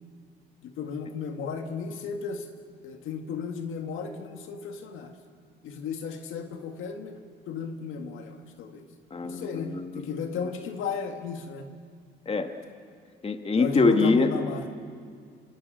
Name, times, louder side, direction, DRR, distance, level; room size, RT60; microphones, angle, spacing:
voice 1, 0.6-2.5 2.8-5.1 5.6-7.2 7.5-8.9 9.2-11.7 13.6-14.7, left 5 dB, 85° left, 5 dB, 1.9 m, -34 dB
voice 2, 9.1-10.0 12.2-12.6 13.2-14.3, left 3 dB, 30° left, 6 dB, 1.7 m, -24 dB
26.0 x 25.0 x 6.4 m, 2.1 s
cardioid pair, 90°, 20 cm